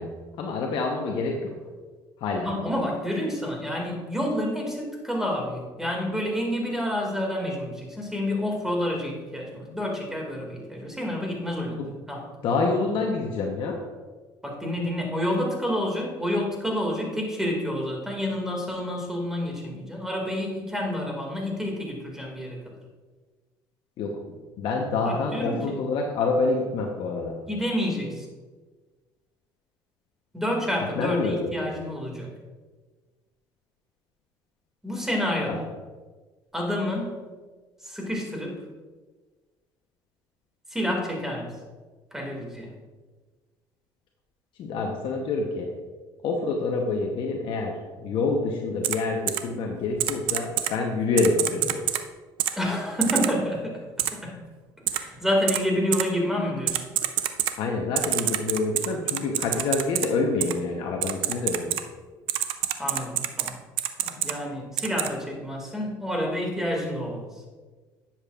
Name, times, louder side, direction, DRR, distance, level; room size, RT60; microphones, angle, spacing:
voice 1, 0.0-1.6 2.2-2.5 11.8-11.9 12.4-13.8 24.0-24.1 24.6-27.4 30.9-31.5 35.5-35.6 44.6-45.7 46.2-51.9 57.6-61.8, left 3 dB, 65° left, 1 dB, 0.9 m, -27 dB
voice 2, 2.4-11.8 12.1-12.2 14.4-22.6 25.0-25.7 27.5-28.2 30.3-32.3 34.8-35.6 36.5-37.2 37.8-38.6 40.7-41.5 42.1-42.7 52.6-53.8 54.1-54.4 54.9-56.8 62.8-63.6 64.0-67.3, left 1 dB, 5° right, 0 dB, 2.1 m, -29 dB
Typing, 48.8-49.0 49.3-49.4 50.0-50.7 51.2-52.0 52.4-52.5 53.0-53.3 54.0-54.1 54.9-55.0 55.5-55.6 55.9-56.0 56.7-57.5 58.0-60.1 60.4-60.5 61.0-61.8 62.3-63.5 63.8-64.3 64.8-65.1, right 13 dB, 75° right, 0.5 m, -25 dB
10.5 x 7.3 x 2.5 m, 1.3 s
cardioid pair, 105°, 9 cm